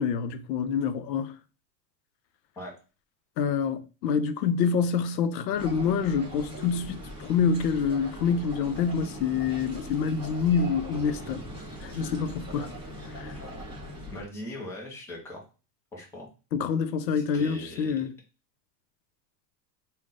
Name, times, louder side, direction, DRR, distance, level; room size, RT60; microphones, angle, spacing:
voice 1, 0.0-1.3 3.4-11.4 11.8-12.7 13.2-13.3 16.5-18.1, left 6 dB, 80° left, 0.7 m, -27 dB
sound 1, 5.5-14.2, equal, 10° right, 1.1 m, -40 dB
voice 2, 14.1-15.4 15.9-16.3 17.1-18.0, left 1 dB, 5° left, 0.4 m, -40 dB
3.8 x 2.3 x 3.6 m
supercardioid pair, 150°, 50 cm